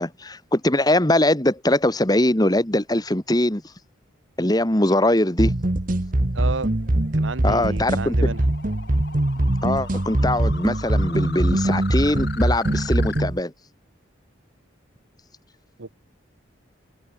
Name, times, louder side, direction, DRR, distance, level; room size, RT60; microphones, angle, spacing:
voice 1, 0.0-3.6 4.4-5.5 7.4-8.2 9.6-13.5, left 1 dB, 20° left, 1.8 m, -21 dB
sound 1, 5.3-13.2, left 5 dB, 55° left, 2.4 m, -41 dB
sound 2, 5.4-13.4, right 1 dB, 45° right, 1.2 m, -22 dB
voice 2, 6.3-6.7 7.1-8.4 15.8-15.9, right 3 dB, 85° right, 1.2 m, -31 dB
head